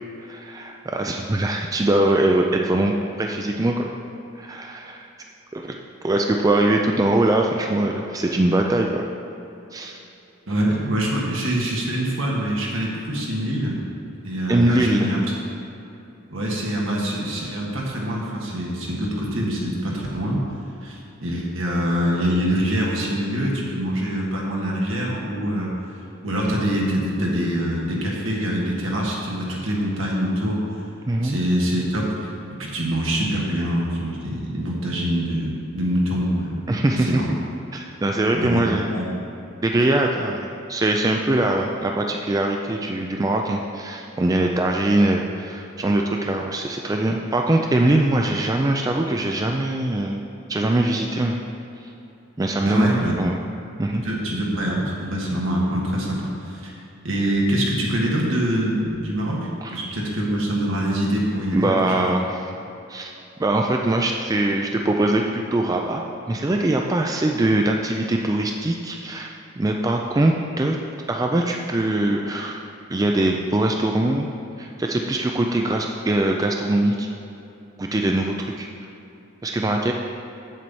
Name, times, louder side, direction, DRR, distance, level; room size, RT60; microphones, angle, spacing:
voice 1, 0.3-3.9 4.4-5.1 5.5-5.8 6.0-9.1 9.7-10.0 14.5-15.1 31.1-31.4 36.7-37.1 37.7-38.9 39.6-50.2 50.5-51.4 51.8-51.9 52.4-53.4 53.8-54.0 59.6-59.8 61.5-62.4 62.9-63.1 63.4-70.8 71.1-74.3 74.6-77.1 77.8-78.7 79.4-79.9, right 1 dB, 15° right, 1 dB, 0.3 m, -22 dB
voice 2, 10.5-13.8 14.2-15.2 16.3-20.4 20.8-25.7 26.2-30.6 31.2-32.3 32.6-36.6 37.0-37.3 38.3-39.1 52.6-53.2 54.0-56.8 57.0-62.1, equal, 75° right, -3 dB, 1.7 m, -24 dB
7.7 x 7.5 x 4.1 m, 2.9 s
head